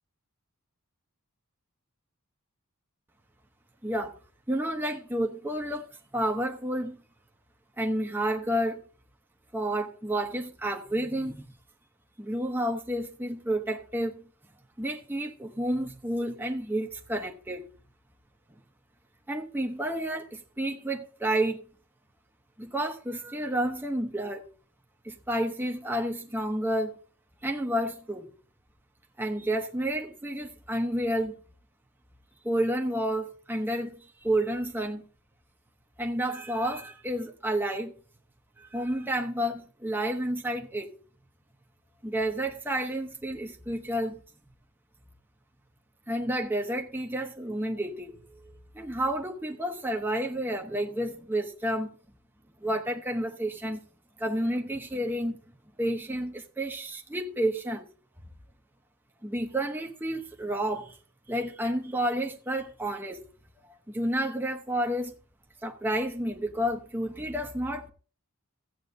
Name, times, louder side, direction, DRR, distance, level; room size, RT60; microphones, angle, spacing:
voice 1, 3.8-4.2 4.5-7.0 7.8-8.8 9.5-11.5 12.2-14.3 14.8-17.7 19.3-21.6 22.6-24.4 25.0-27.0 27.4-28.3 29.2-31.4 32.4-35.1 36.0-37.9 38.6-40.9 42.0-44.2 46.1-52.0 52.6-53.8 54.2-55.4 55.8-57.8 59.2-61.0 61.3-63.3 63.9-65.1 65.6-67.9, right 1 dB, 10° right, 0.9 m, -30 dB
15.5 x 8.3 x 2.7 m
head